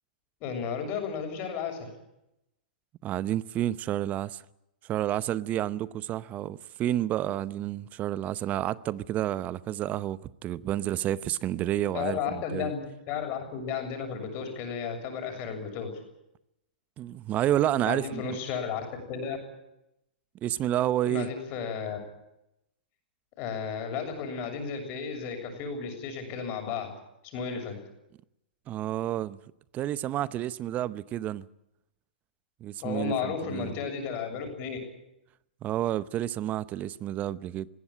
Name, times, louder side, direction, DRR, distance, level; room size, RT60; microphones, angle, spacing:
voice 1, 0.4-1.9 11.9-15.9 17.8-19.4 21.0-22.0 23.4-26.9 27.3-27.8 32.8-34.8, left 6 dB, 40° left, 7.2 m, -33 dB
voice 2, 3.0-4.4 4.9-12.7 17.0-18.2 20.4-21.3 28.7-29.4 29.7-31.4 32.6-33.8 35.6-37.7, right 12 dB, 30° right, 0.8 m, -30 dB
21.0 x 16.5 x 10.0 m
hypercardioid pair, 115°, 5 cm